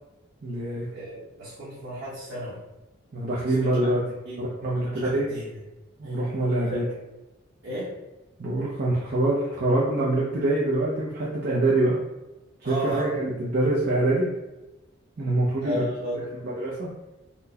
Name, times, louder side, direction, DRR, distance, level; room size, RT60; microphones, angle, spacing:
voice 1, 0.4-0.9 3.1-4.0 4.4-5.3 6.0-6.9 8.4-12.0 12.6-14.3 15.2-15.8 16.4-16.9, right 2 dB, 50° right, -6 dB, 0.5 m, -25 dB
voice 2, 0.9-2.6 3.5-5.5 6.0-6.2 6.7-6.8 7.6-7.9 12.6-13.1 15.6-16.2, equal, 80° right, -11 dB, 1.1 m, -34 dB
4.2 x 2.1 x 2.7 m, 1.0 s
head